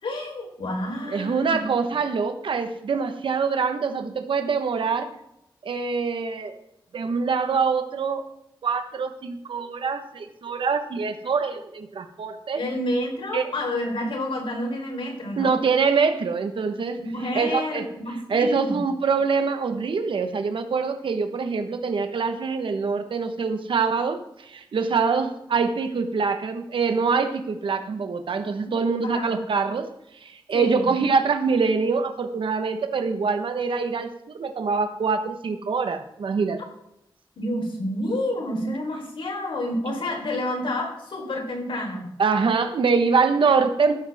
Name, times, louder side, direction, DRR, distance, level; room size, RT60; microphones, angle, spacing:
voice 1, 0.0-1.6 12.5-15.5 17.0-18.8 28.6-28.7 29.0-29.4 30.5-30.9 37.4-42.1, left 1 dB, 85° left, 2 dB, 3.8 m, -29 dB
voice 2, 1.1-5.1 5.6-6.6 6.9-8.2 8.6-12.6 13.3-13.5 15.4-17.0 17.3-17.9 18.3-29.9 30.2-36.6 42.2-43.9, right 5 dB, 80° right, 7 dB, 1.2 m, -24 dB
15.0 x 12.5 x 3.6 m, 0.82 s
wide cardioid pair, 145°, 9 cm